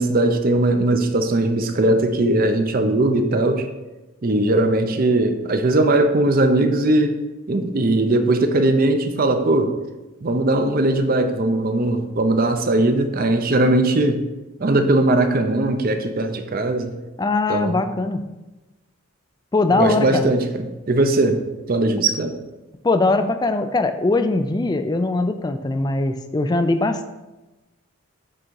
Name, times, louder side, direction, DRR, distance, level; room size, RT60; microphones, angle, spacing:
voice 1, 0.0-3.7 4.2-7.2 7.5-9.7 10.2-14.2 14.6-16.9 17.5-17.8 19.7-21.4 21.7-22.4, right 2 dB, 40° right, 6 dB, 0.6 m, -19 dB
voice 2, 17.2-18.3 19.5-20.3 22.8-27.1, left 2 dB, 20° left, 9 dB, 0.3 m, -21 dB
7.6 x 3.6 x 4.7 m, 1.1 s
head